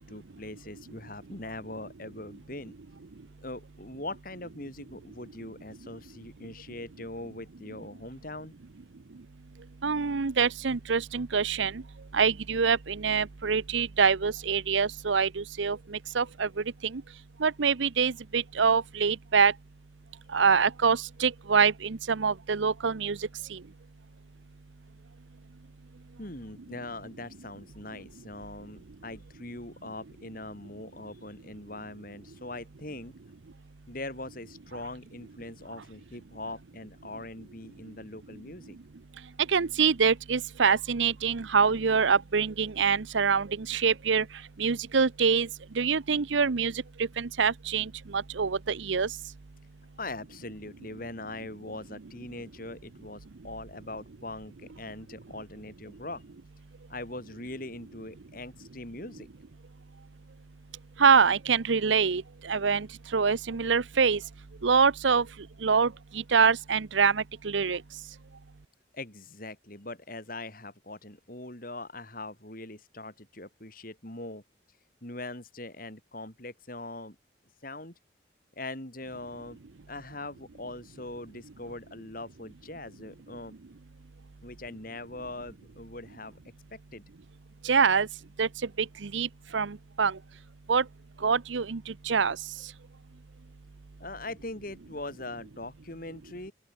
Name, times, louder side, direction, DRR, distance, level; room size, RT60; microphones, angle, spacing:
voice 1, 0.0-2.7 3.4-8.5 26.2-33.1 33.9-38.8 50.0-56.2 56.9-59.3 68.9-74.4 75.0-77.2 77.6-77.9 78.5-79.6 79.9-83.5 84.4-86.4 86.7-87.0 94.0-96.5, left 2 dB, 45° left, 5.1 m, -41 dB
voice 2, 9.8-11.8 12.1-17.0 17.4-19.5 20.3-23.2 23.5-23.6 39.5-44.2 44.6-45.5 45.8-46.7 47.2-49.1 61.0-62.9 63.1-64.2 64.6-65.3 65.6-67.8 87.6-88.1 88.4-88.5 88.8-89.3 89.5-90.2 90.7-90.8 91.2-92.4, right 6 dB, 75° right, 0.7 m, -25 dB
open air
head